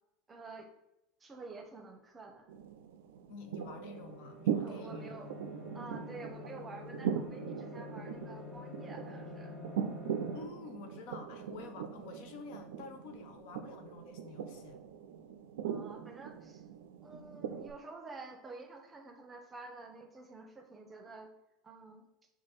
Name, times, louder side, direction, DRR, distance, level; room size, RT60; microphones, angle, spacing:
voice 1, 0.3-0.7 1.2-2.5 4.6-5.3 5.7-9.5 15.6-16.6 17.0-21.3 21.6-22.1, right 3 dB, 25° right, 4 dB, 0.7 m, -49 dB
sound 1, 2.5-17.7, right 8 dB, 75° right, 0.3 m, -40 dB
voice 2, 3.3-5.1 10.3-14.8, left 4 dB, 65° left, 5 dB, 0.6 m, -48 dB
sound 2, 3.8-10.4, left 5 dB, 30° left, 0.9 m, -48 dB
5.7 x 2.3 x 3.1 m, 0.88 s
hypercardioid pair, 85°, 0 cm